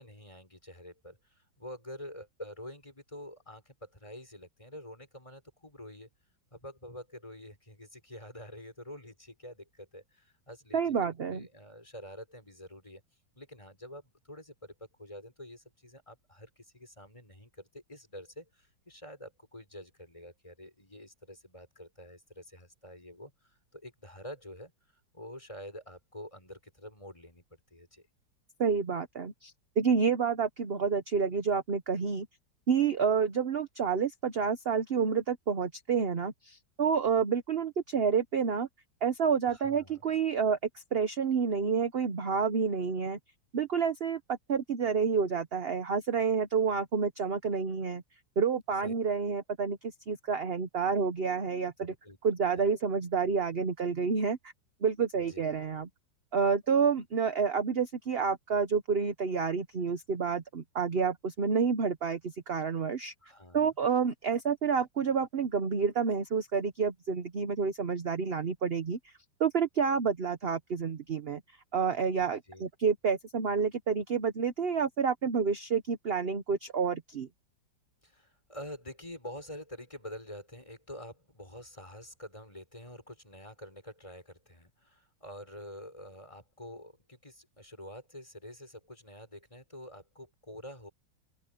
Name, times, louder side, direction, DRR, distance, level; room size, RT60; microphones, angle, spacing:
voice 1, 0.0-6.1 6.5-13.0 13.3-28.1 39.5-40.0 48.8-48.9 51.8-52.2 52.5-52.6 55.1-55.5 63.2-63.7 72.1-72.7 78.0-90.9, left 1 dB, 15° left, 6.0 m, -47 dB
voice 2, 10.7-11.4 28.6-32.3 32.7-38.7 39.0-43.2 43.5-48.0 48.4-51.9 52.2-54.4 54.8-55.9 56.3-63.1 63.5-69.1 69.4-71.4 71.7-77.3, right 6 dB, 40° right, 0.9 m, -29 dB
open air
omnidirectional pair, 2.0 m